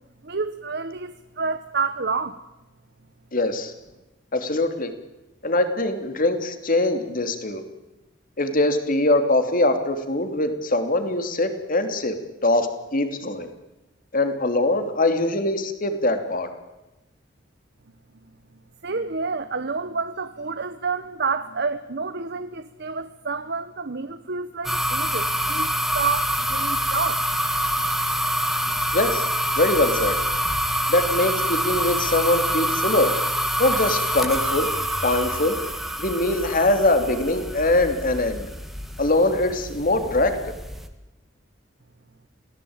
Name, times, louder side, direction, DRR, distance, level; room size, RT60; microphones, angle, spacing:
voice 1, 0.2-2.4 18.8-27.2, right 4 dB, 60° right, 11 dB, 1.2 m, -29 dB
voice 2, 3.3-3.7 4.3-4.9 5.4-7.6 8.4-12.1 12.4-13.5 14.1-16.5 28.9-29.2 29.6-30.2 30.9-33.1 33.6-34.7 35.0-35.6 36.0-38.5 39.0-40.3, left 2 dB, 45° left, 8 dB, 3.1 m, -22 dB
sound 1, 24.6-40.9, equal, ahead, 2.2 m, -26 dB
27.5 x 18.0 x 9.0 m, 1.0 s
head